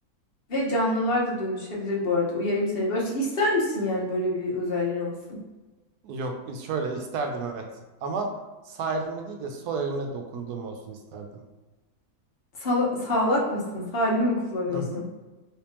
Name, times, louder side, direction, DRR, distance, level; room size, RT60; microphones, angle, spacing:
voice 1, 0.5-5.4 12.6-15.0, left 1 dB, 50° left, -3 dB, 0.9 m, -26 dB
voice 2, 6.0-7.7 8.0-8.3 8.7-11.4 14.7-15.0, right 3 dB, 90° right, 4 dB, 1.2 m, -32 dB
3.5 x 3.1 x 3.0 m, 1.2 s
omnidirectional pair, 1.6 m